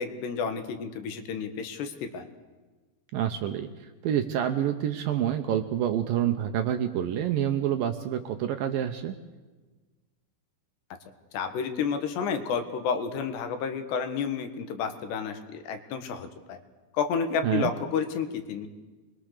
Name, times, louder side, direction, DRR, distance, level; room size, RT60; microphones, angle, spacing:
voice 1, 0.0-2.3 11.3-16.6 16.9-18.7, left 6 dB, 80° left, 7 dB, 3.7 m, -31 dB
voice 2, 3.1-9.2 17.4-17.7, right 10 dB, 75° right, 7 dB, 2.3 m, -27 dB
25.0 x 21.5 x 6.7 m, 1.3 s
omnidirectional pair, 4.9 m